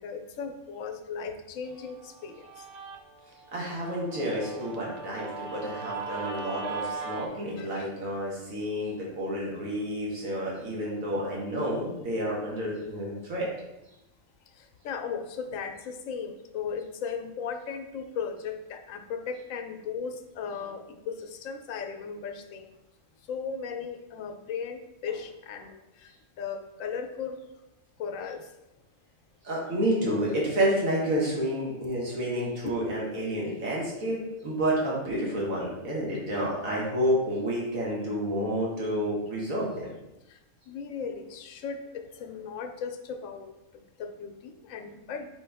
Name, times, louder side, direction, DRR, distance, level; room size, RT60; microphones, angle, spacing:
voice 1, 0.0-2.6 7.6-7.9 14.6-22.7 23.3-26.1 26.4-27.4 28.0-28.5 32.6-32.8 35.4-35.5 40.3-40.4 40.7-45.3, left 6 dB, 80° left, 6 dB, 1.0 m, -37 dB
Guitar, 1.8-7.3, right 4 dB, 55° right, 0.4 m, -39 dB
voice 2, 3.5-13.5 29.4-39.9, equal, 80° right, -4 dB, 1.7 m, -29 dB
5.1 x 3.1 x 3.4 m, 0.93 s
omnidirectional pair, 1.4 m